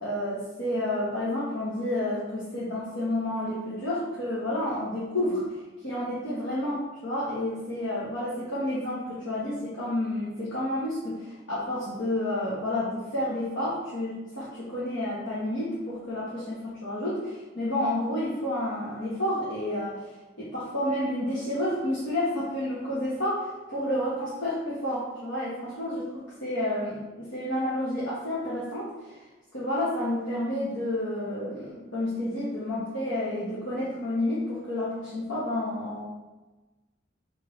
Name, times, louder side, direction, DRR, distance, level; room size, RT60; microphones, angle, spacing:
voice 1, 0.0-5.4 5.8-20.0 20.4-29.2 29.5-36.1, left 1 dB, 70° left, -9 dB, 1.2 m, -30 dB
3.4 x 3.1 x 4.5 m, 1.1 s
head